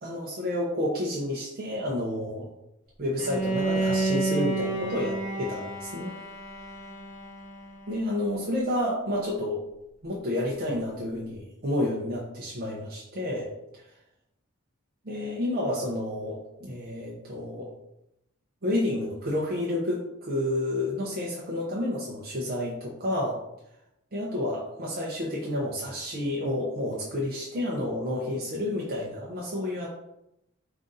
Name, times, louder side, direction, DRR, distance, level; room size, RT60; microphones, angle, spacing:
voice 1, 0.0-2.5 3.0-6.1 7.9-9.7 10.0-13.9 15.0-17.7 18.6-23.4 24.1-29.9, left 1 dB, 45° right, -4 dB, 0.6 m, -30 dB
Bowed string instrument, 3.2-8.2, right 2 dB, 35° left, 0.9 m, -30 dB
3.7 x 2.5 x 3.9 m, 0.85 s
head